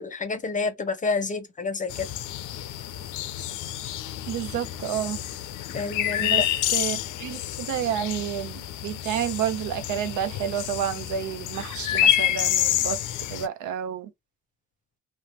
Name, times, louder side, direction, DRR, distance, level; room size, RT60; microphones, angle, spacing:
voice 1, 0.0-2.1 5.7-6.5, left 4 dB, 25° left, 0.7 m, -29 dB
sound 1, 1.9-13.5, left 11 dB, 90° left, 0.5 m, -28 dB
voice 2, 4.3-5.2 6.2-6.4 6.7-13.0 13.3-14.1, right 9 dB, 75° right, 0.6 m, -30 dB
2.8 x 2.1 x 2.9 m
cardioid pair, 90°, 30 cm